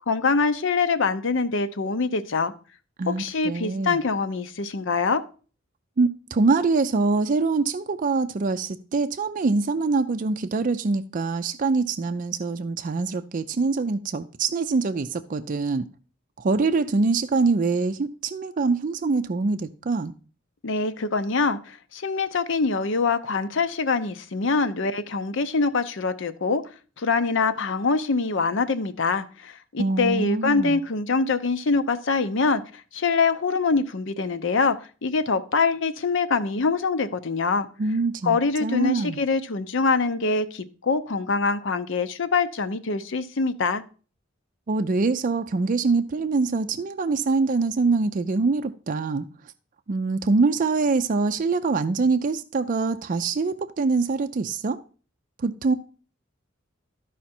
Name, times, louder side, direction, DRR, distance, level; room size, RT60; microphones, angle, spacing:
voice 1, 0.1-2.5 3.1-5.2 20.6-26.6 27.0-32.6 32.9-37.7 38.2-43.8, left 4 dB, 65° left, 0.7 m, -24 dB
voice 2, 3.0-4.0 6.0-15.8 16.4-20.1 29.8-30.8 37.8-39.2 44.7-49.3 49.9-54.8 55.4-55.7, right 4 dB, 45° right, 0.4 m, -24 dB
12.5 x 5.0 x 4.3 m
head